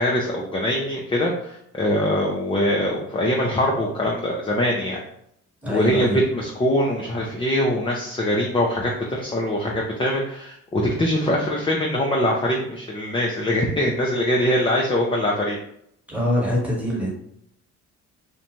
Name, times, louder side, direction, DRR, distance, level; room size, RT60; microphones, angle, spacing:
voice 1, 0.0-5.0 5.7-15.6, left 1 dB, 15° left, -2 dB, 0.4 m, -23 dB
voice 2, 5.6-6.2 16.1-17.1, equal, 5° right, -3 dB, 1.2 m, -23 dB
2.5 x 2.1 x 2.9 m, 0.74 s
hypercardioid pair, 55°, 40 cm